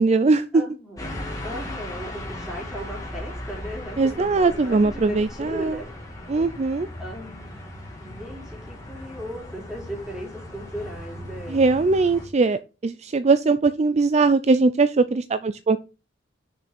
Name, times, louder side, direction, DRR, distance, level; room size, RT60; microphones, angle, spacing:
voice 1, 0.0-0.6 4.0-5.8 6.3-6.9 11.5-15.8, right 3 dB, 35° right, 12 dB, 0.4 m, -20 dB
voice 2, 0.5-5.9 7.0-7.6 8.0-11.6, equal, 5° right, -2 dB, 3.8 m, -36 dB
sound 1, 1.0-12.3, left 1 dB, 20° left, 2.6 m, -37 dB
6.6 x 6.2 x 6.0 m, 0.31 s
head